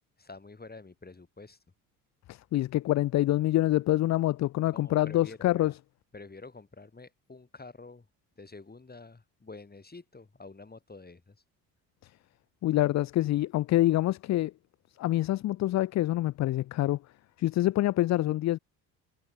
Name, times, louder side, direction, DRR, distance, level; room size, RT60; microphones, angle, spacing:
voice 1, 0.2-1.6 4.7-5.7 6.1-8.1 8.4-11.4, left 3 dB, 20° left, 7.0 m, -48 dB
voice 2, 2.3-5.7 12.6-14.5 15.0-17.0 17.4-18.6, left 15 dB, 40° left, 0.5 m, -26 dB
hypercardioid pair, 60°, 43 cm